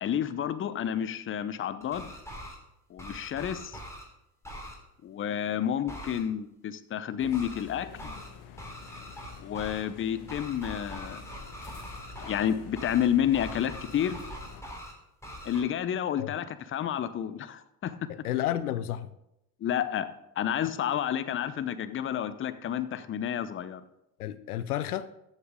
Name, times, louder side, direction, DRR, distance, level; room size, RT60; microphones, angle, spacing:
voice 1, 0.0-2.1 2.9-3.8 5.0-7.9 9.4-11.2 12.2-14.2 15.4-18.0 19.6-20.1 20.4-23.8, left 9 dB, 30° left, 13 dB, 0.7 m, -30 dB
sound 1, 1.8-2.5 3.0-4.0 4.4-4.7 5.9-6.2 7.3-7.6 8.0-8.3 8.6-9.8 10.3-12.5 12.7-13.1 13.3-14.9 15.2-15.6, equal, 5° left, 3.7 m, -42 dB
sound 2, 7.2-14.6, left 7 dB, 45° left, 1.0 m, -48 dB
voice 2, 18.1-19.1 24.2-25.1, left 12 dB, 80° left, 15 dB, 0.5 m, -31 dB
14.0 x 7.4 x 3.7 m, 0.84 s
figure-of-eight pair, 60°, 45 cm